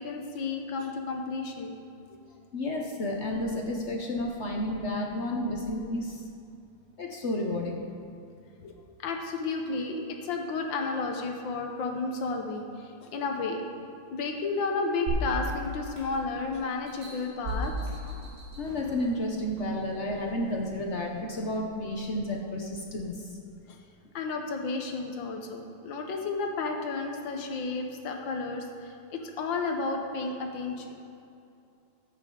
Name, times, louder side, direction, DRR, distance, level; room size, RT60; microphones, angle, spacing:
voice 1, 0.0-1.7 8.6-8.7 9.0-13.7 14.1-17.7 23.7-23.8 24.2-30.9, left 3 dB, 80° left, 3 dB, 1.8 m, -32 dB
voice 2, 2.5-6.2 7.0-7.8 18.6-23.3, left 1 dB, 50° left, 1 dB, 0.9 m, -31 dB
sound 1, 15.1-16.4 16.9-19.0 19.6-19.7, equal, 50° right, 3.0 m, -34 dB
14.0 x 8.2 x 3.8 m, 2.6 s
omnidirectional pair, 2.1 m